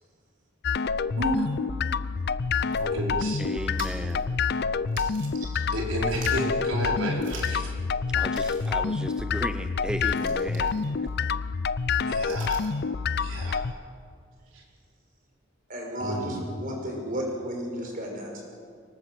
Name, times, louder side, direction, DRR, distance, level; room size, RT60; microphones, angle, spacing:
sound 1, 0.6-13.7, left 5 dB, 55° left, 0.5 m, -27 dB
voice 1, 1.2-1.5 2.8-3.4 5.7-7.7 12.1-12.6 13.2-13.6 14.5-14.6 16.0-16.3, right 1 dB, 85° right, -1 dB, 5.0 m, -31 dB
sound 2, 2.3-5.8 6.0-6.6 7.2-7.7 8.0-8.1 8.3-12.8, right 4 dB, 65° right, 4.3 m, -48 dB
voice 2, 3.4-4.3 8.1-11.1, equal, 5° right, 7 dB, 0.7 m, -35 dB
voice 3, 15.7-18.4, equal, 45° right, 1 dB, 5.8 m, -33 dB
24.5 x 19.0 x 7.8 m, 2.2 s
head